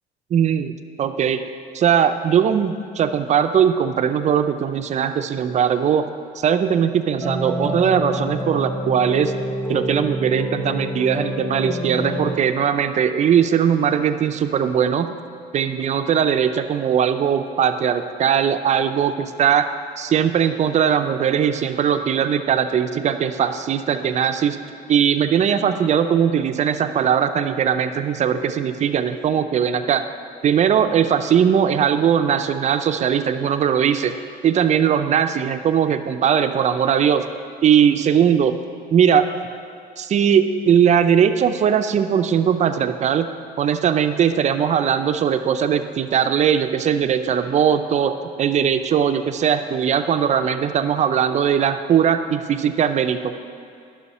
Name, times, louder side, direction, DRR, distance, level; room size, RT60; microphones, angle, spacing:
voice 1, 0.3-1.4 1.7-6.1 6.4-9.3 9.7-15.1 15.5-19.7 20.0-24.6 24.9-30.0 30.4-34.1 34.4-37.3 37.6-38.6 38.9-39.3 40.0-43.3 43.6-53.4, right 8 dB, 45° right, 8 dB, 0.5 m, -19 dB
sound 1, 7.2-12.4, equal, 10° left, 0.6 m, -27 dB
11.0 x 6.2 x 4.2 m, 2.3 s
cardioid pair, 110°, 17 cm